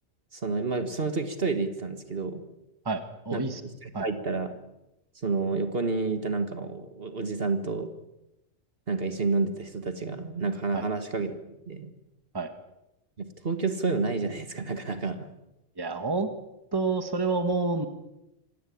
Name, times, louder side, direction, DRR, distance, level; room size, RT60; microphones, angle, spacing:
voice 1, 0.3-2.4 3.3-3.4 3.8-4.6 5.2-7.9 8.9-11.9 13.2-15.3, right 3 dB, 50° right, 8 dB, 2.1 m, -29 dB
voice 2, 2.9-3.6 3.9-4.1 10.7-10.8 12.3-12.5 15.8-16.3 16.7-17.9, right 3 dB, 20° right, 8 dB, 1.7 m, -28 dB
26.0 x 17.5 x 8.7 m, 0.91 s
omnidirectional pair, 1.3 m